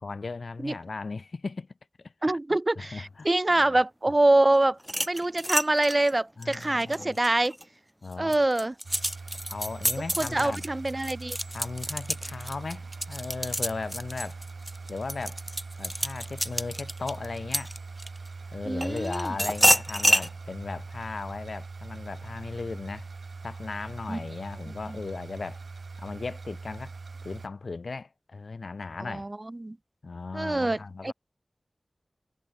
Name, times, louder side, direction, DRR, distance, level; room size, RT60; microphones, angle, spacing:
voice 1, 0.0-1.7 2.0-2.1 2.8-3.3 3.6-3.8 6.4-7.2 8.0-8.4 9.5-10.6 11.5-14.4 14.9-15.4 15.8-17.7 18.5-23.1 23.4-25.6 26.0-26.9 27.2-29.3 30.0-31.1, left 4 dB, 80° left, 2.1 m, -37 dB
voice 2, 2.2-4.8 5.1-7.6 8.2-8.7 10.2-11.4 18.6-19.4 24.1-24.2 24.7-25.0 29.0-29.8 30.3-30.8 31.0-31.1, right 2 dB, 35° right, 0.9 m, -25 dB
sound 1, 4.8-7.6 8.1-18.3 18.8-20.3, equal, 5° right, 0.4 m, -28 dB
sound 2, 8.8-27.5, right 4 dB, 85° right, 1.3 m, -42 dB
wide cardioid pair, 50°, 0 cm